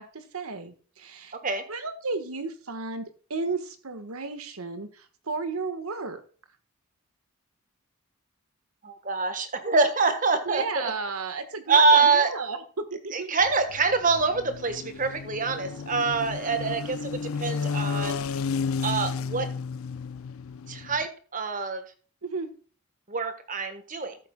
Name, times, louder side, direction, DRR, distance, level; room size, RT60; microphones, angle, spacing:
voice 1, 0.0-1.3 1.7-3.0 3.3-6.2 10.4-12.6 13.0-13.3 22.2-22.5, right 4 dB, 90° right, 9 dB, 1.5 m, -33 dB
voice 2, 8.8-10.9 11.7-12.3 13.1-18.3 18.8-19.5 20.7-21.8 23.1-24.2, right 4 dB, 35° right, 9 dB, 1.4 m, -25 dB
sound 1, 13.4-21.1, left 5 dB, 75° left, 0.5 m, -32 dB
14.0 x 8.1 x 2.3 m, 0.40 s
head